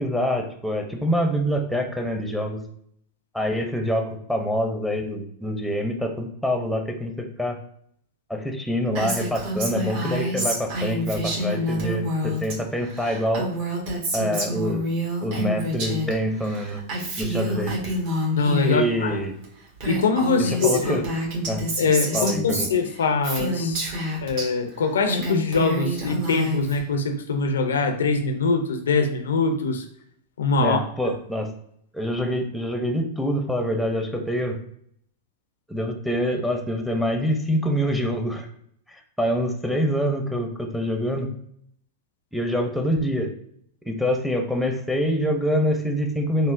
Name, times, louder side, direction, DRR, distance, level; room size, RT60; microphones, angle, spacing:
voice 1, 0.0-2.6 3.3-7.6 8.3-13.5 14.1-14.8 15.2-16.8 17.2-17.7 18.6-19.4 20.4-21.0 21.5-21.6 22.1-22.7 30.6-31.5 31.9-34.6 35.7-38.5 39.2-41.3 42.3-43.3 43.9-46.5, equal, ahead, 3 dB, 0.5 m, -25 dB
Female speech woman speaking, 9.0-12.6 12.8-16.1 16.4-18.8 19.4-19.5 19.8-24.5 24.9-26.8, equal, 60° right, 1.2 m, -27 dB
voice 2, 18.3-19.2 19.9-21.0 21.8-23.8 24.2-29.8 30.4-30.8, left 4 dB, 85° left, 7 dB, 0.4 m, -23 dB
3.6 x 2.0 x 2.5 m, 0.68 s
hypercardioid pair, 110°, 0 cm